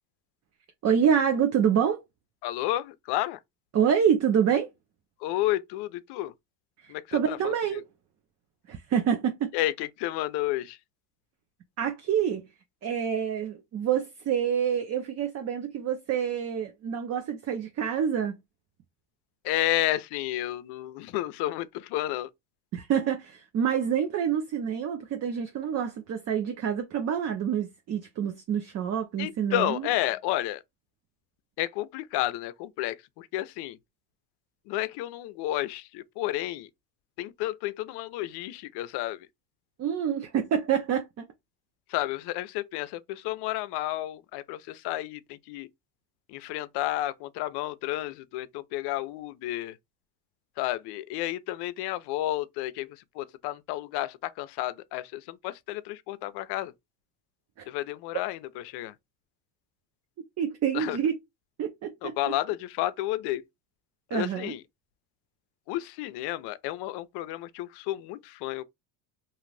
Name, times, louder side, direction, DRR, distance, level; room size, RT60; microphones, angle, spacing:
voice 1, 0.8-2.0 3.7-4.7 6.8-7.8 8.7-9.5 11.8-12.5 12.8-18.4 22.7-29.9 39.8-41.3 57.6-57.7 60.4-61.1 61.6-62.1 64.1-64.5, right 8 dB, 35° right, 0.5 m, -27 dB
voice 2, 2.4-3.4 5.2-6.3 6.9-7.8 9.5-10.8 19.4-22.3 29.2-30.6 31.6-33.8 34.7-36.7 37.2-39.3 41.9-45.7 46.3-49.8 50.6-56.7 57.7-58.9 60.7-61.0 62.0-63.4 64.1-64.6 65.7-68.6, left 15 dB, 60° left, 0.5 m, -31 dB
2.6 x 2.4 x 3.2 m
supercardioid pair, 95°, 47 cm